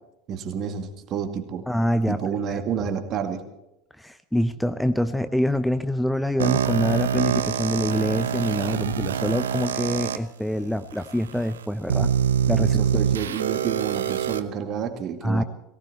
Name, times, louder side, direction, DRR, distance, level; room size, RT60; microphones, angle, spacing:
voice 1, 0.3-1.7 2.1-3.4 12.6-15.4, right 7 dB, 45° right, 7 dB, 2.1 m, -29 dB
voice 2, 1.7-2.2 2.5-2.6 4.0-12.1 12.5-12.8 15.2-15.4, equal, 5° left, 12 dB, 0.6 m, -25 dB
sound 1, 6.4-10.2 10.9-11.0 11.9-14.4, right 8 dB, 75° right, 0.8 m, -24 dB
18.5 x 17.0 x 4.3 m, 0.89 s
hypercardioid pair, 80°, 0 cm